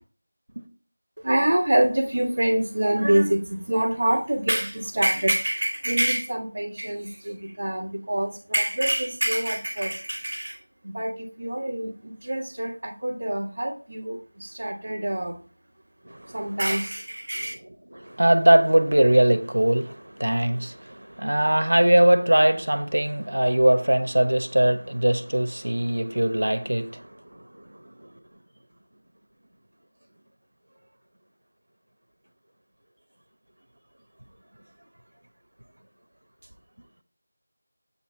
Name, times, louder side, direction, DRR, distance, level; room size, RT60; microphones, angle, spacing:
voice 1, 1.2-10.6 10.8-15.3 16.3-17.5, right 1 dB, 40° right, 1.5 m, -26 dB
voice 2, 16.1-16.4 17.9-27.5 27.8-28.1, right 1 dB, 80° right, 1.0 m, -21 dB
8.4 x 4.3 x 4.4 m
figure-of-eight pair, 180°, 0 cm